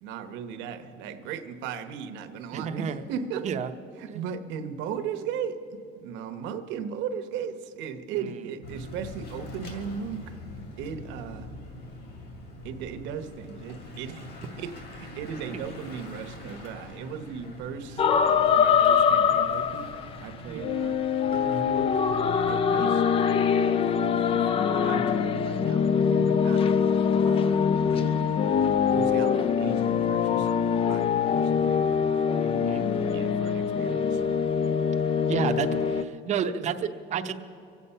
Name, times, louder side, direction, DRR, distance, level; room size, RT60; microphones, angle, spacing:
voice 1, 0.0-3.5 4.0-10.4 10.8-11.5 12.6-14.3 14.6-19.9 20.2-21.0 21.3-23.0 23.9-26.7 27.2-28.4 28.9-34.2, right 7 dB, 65° right, 8 dB, 1.0 m, -37 dB
voice 2, 2.5-3.0 3.4-3.7 4.1-4.2 8.2-8.4 20.5-20.7 22.7-22.9 32.6-32.9 35.3-37.3, right 7 dB, 35° right, 8 dB, 0.7 m, -31 dB
Bicycle / Mechanisms, 8.6-22.6, left 1 dB, 50° left, 2.6 m, -44 dB
sound 1, 18.0-20.2 20.6-36.0, left 7 dB, 30° left, 0.4 m, -24 dB
24.5 x 8.5 x 5.5 m, 2.6 s
cardioid pair, 160°, 20 cm